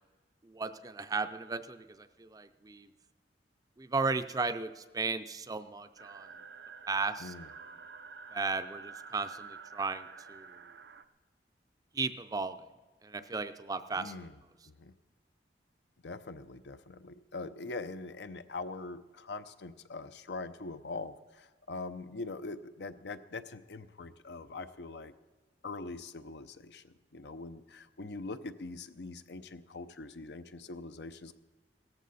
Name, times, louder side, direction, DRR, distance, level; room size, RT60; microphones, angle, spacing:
voice 1, 0.4-2.9 3.8-6.3 6.9-7.3 8.3-10.5 11.9-12.6 13.0-14.1, right 4 dB, 20° right, 11 dB, 0.5 m, -35 dB
sound 1, 6.0-11.0, right 5 dB, 70° right, 0.6 m, -49 dB
voice 2, 7.2-7.5 14.0-14.4 14.7-14.9 16.0-25.1 25.6-31.3, left 3 dB, 75° left, 11 dB, 0.7 m, -43 dB
17.0 x 14.0 x 4.1 m, 1.2 s
head